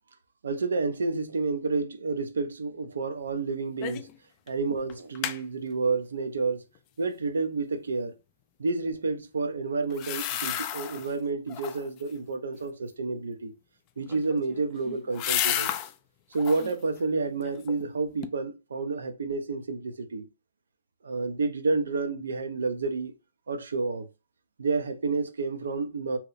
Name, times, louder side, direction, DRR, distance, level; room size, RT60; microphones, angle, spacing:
voice 1, 0.4-4.1 4.5-6.6 7.0-8.1 8.6-13.5 14.0-15.7 16.3-20.3 21.0-23.1 23.5-24.1 24.6-26.2, right 3 dB, 80° right, 0.6 m, -30 dB
sound 1, 3.8-4.1 4.5-4.6 4.9-5.4 9.9-11.1 11.5-12.0 14.0-15.9 16.3-16.8 17.2-17.9 18.2-18.3, left 11 dB, 30° left, 0.3 m, -32 dB
2.9 x 2.0 x 3.9 m
hypercardioid pair, 145°, 0 cm